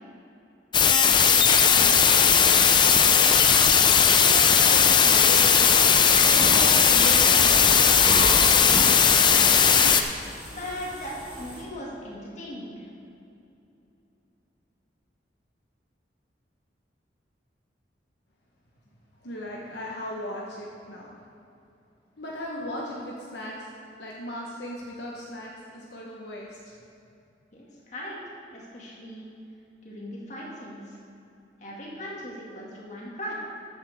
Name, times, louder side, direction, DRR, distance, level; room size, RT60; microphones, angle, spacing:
sound 1, 0.7-10.0, left 7 dB, 25° left, 0.5 m, -18 dB
voice 1, 3.0-3.4 4.2-5.9 6.2-7.8 19.2-21.1 22.2-23.7 24.0-26.7, equal, 70° left, -3 dB, 1.2 m, -37 dB
sound 2, 6.4-11.6, equal, 10° right, 2.7 m, -34 dB
voice 2, 8.7-9.9 10.5-12.8 27.5-28.2 28.5-29.3 29.8-31.0 31.6-33.3, equal, 40° left, -4 dB, 2.3 m, -39 dB
13.0 x 8.8 x 3.6 m, 2.7 s
head